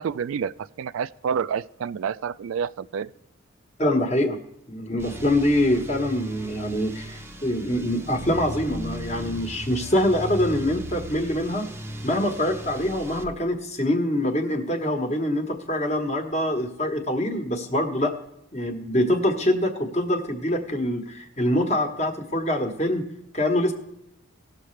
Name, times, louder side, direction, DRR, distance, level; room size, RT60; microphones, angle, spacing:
voice 1, 0.0-3.1, right 7 dB, 75° right, 0.3 m, -29 dB
voice 2, 3.8-4.4 4.7-11.7 12.0-18.1 18.5-23.7, left 1 dB, 30° left, 1.2 m, -24 dB
sound 1, 5.0-13.2, right 1 dB, 10° right, 0.6 m, -37 dB
18.0 x 6.7 x 3.2 m
head